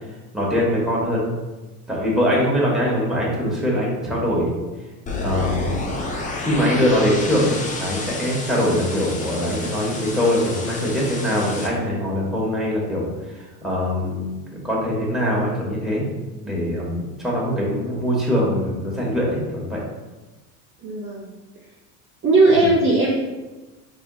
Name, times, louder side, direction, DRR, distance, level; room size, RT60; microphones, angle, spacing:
voice 1, 0.3-1.2 1.9-4.6 5.2-5.8 6.4-13.0 13.3-14.3 14.5-16.0 16.4-19.8 22.6-22.7, equal, ahead, -5 dB, 1.3 m, -22 dB
sound 1, 5.1-11.7, left 2 dB, 20° left, 0.5 m, -30 dB
voice 2, 20.8-21.3 22.2-23.1, right 2 dB, 30° right, -5 dB, 0.7 m, -17 dB
4.4 x 3.4 x 2.3 m, 1.2 s
supercardioid pair, 95°, 44 cm